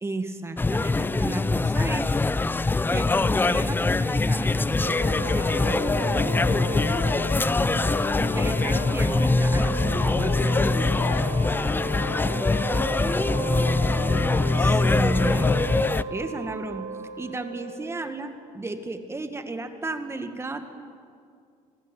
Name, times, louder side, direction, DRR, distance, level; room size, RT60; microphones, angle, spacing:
voice 1, 0.0-2.2 2.9-6.6 8.2-10.9 14.6-15.5 16.1-16.9 17.2-20.7, right 2 dB, 20° right, 7 dB, 2.0 m, -33 dB
sound 1, 0.6-16.0, left 3 dB, 15° left, 0.6 m, -23 dB
Wind instrument woodwind instrument, 4.7-18.1, right 5 dB, 85° right, 3.0 m, -35 dB
voice 2, 10.9-14.1, left 4 dB, 65° left, 1 dB, 3.8 m, -40 dB
27.5 x 20.5 x 9.3 m, 2.3 s
cardioid pair, 110°, 14 cm